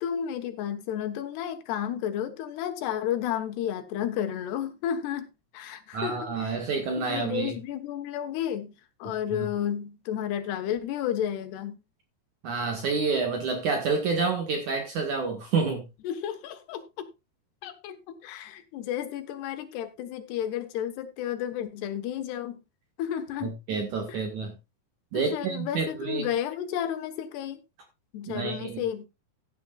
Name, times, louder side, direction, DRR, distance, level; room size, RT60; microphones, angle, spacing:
voice 1, 0.0-5.3 5.5-6.5 7.0-8.7 9.0-11.8 16.0-17.1 17.6-22.6 23.0-23.5 24.1-24.2 25.1-27.6 28.1-29.1, left 10 dB, 80° left, 3.3 m, -32 dB
voice 2, 5.9-7.6 9.1-9.5 12.4-15.8 23.4-24.5 25.1-26.3 28.3-28.8, right 4 dB, 55° right, 2.8 m, -29 dB
15.5 x 9.6 x 2.4 m
omnidirectional pair, 4.7 m